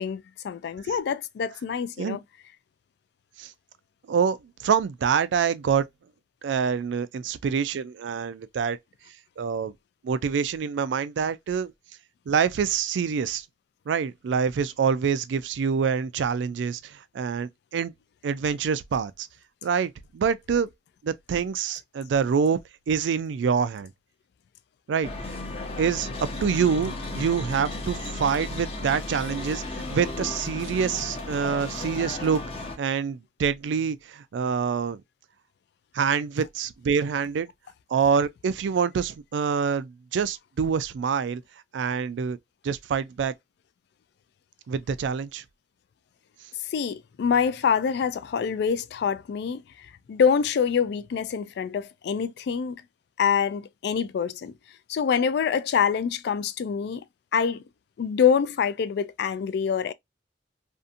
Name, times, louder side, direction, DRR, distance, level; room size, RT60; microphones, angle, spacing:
voice 1, 0.0-2.2 46.7-49.6 50.1-52.8 53.2-54.5 54.9-57.0 57.3-57.6 58.0-59.9, left 7 dB, 65° left, 0.3 m, -25 dB
voice 2, 4.1-5.9 6.4-8.8 9.4-9.7 10.0-11.7 12.3-13.4 13.9-17.9 18.2-19.3 19.6-20.7 21.0-22.6 22.9-23.9 24.9-25.3 25.8-26.1 26.4-32.4 32.8-35.0 35.9-37.5 37.9-41.4 41.7-42.4 42.6-43.3 44.7-45.4, right 6 dB, 85° right, 0.3 m, -26 dB
sound 1, 25.0-32.8, left 2 dB, 35° left, 0.6 m, -34 dB
2.7 x 2.5 x 2.4 m
head